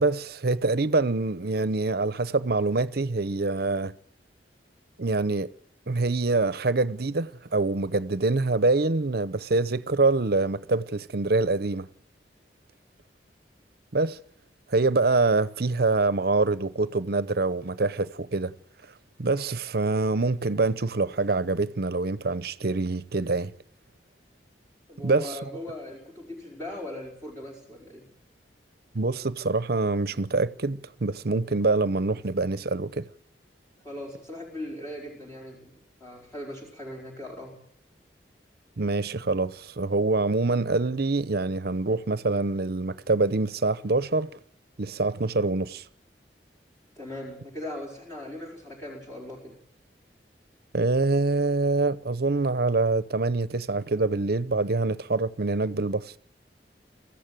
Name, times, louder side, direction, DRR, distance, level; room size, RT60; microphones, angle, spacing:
voice 1, 0.0-3.9 5.0-5.5 5.9-11.9 13.9-14.2 14.7-18.5 19.2-23.5 25.0-25.3 28.9-33.1 38.8-44.3 44.8-45.8 50.7-56.1, right 3 dB, 60° right, 0.8 m, -25 dB
voice 2, 24.9-28.1 33.8-37.6 47.0-49.6, left 1 dB, 15° left, 4.7 m, -39 dB
24.0 x 15.0 x 9.2 m
head